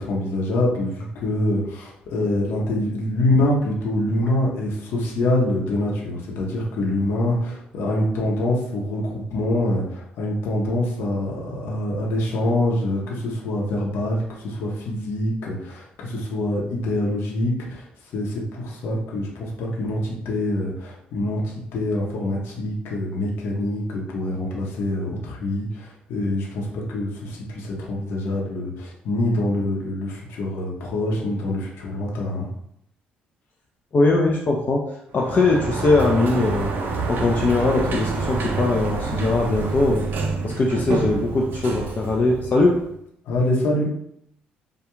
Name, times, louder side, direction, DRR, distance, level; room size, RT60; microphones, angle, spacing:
voice 1, 0.0-32.5 43.3-43.9, left 1 dB, 70° left, -3 dB, 0.8 m, -25 dB
voice 2, 33.9-34.8 35.1-36.7 37.1-40.0 40.4-42.8, left 2 dB, 45° left, -1 dB, 0.5 m, -20 dB
Sliding door, 35.1-42.9, right 4 dB, 55° right, 0.5 m, -28 dB
2.3 x 2.2 x 3.0 m, 0.73 s
hypercardioid pair, 55°, 4 cm